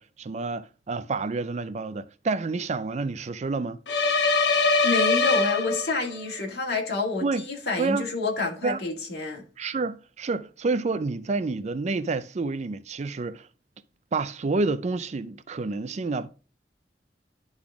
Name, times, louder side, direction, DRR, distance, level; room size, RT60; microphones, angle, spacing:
voice 1, 0.0-3.8 7.2-7.4 7.8-8.0 8.6-8.8 9.6-13.5 14.1-16.3, right 3 dB, 40° right, 0.4 m, -29 dB
sound 1, 3.9-6.2, left 3 dB, 80° left, 0.8 m, -22 dB
voice 2, 4.6-9.4, left 3 dB, 65° left, 2.1 m, -29 dB
11.5 x 4.0 x 3.5 m
head